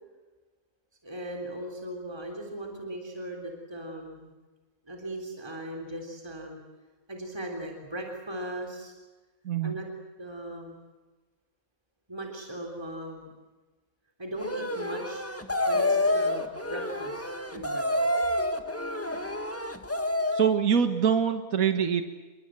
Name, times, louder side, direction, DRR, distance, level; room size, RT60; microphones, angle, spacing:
voice 1, 1.0-4.3 4.9-6.6 7.1-8.9 9.6-9.9 10.2-10.8 12.1-13.3 14.2-15.3 15.7-18.1, right 1 dB, 20° right, 1 dB, 3.8 m, -38 dB
sound 1, 14.4-20.5, left 1 dB, 10° left, 1.7 m, -28 dB
voice 2, 20.3-22.0, right 7 dB, 75° right, 8 dB, 1.9 m, -24 dB
29.0 x 22.5 x 7.8 m, 1.3 s
omnidirectional pair, 1.4 m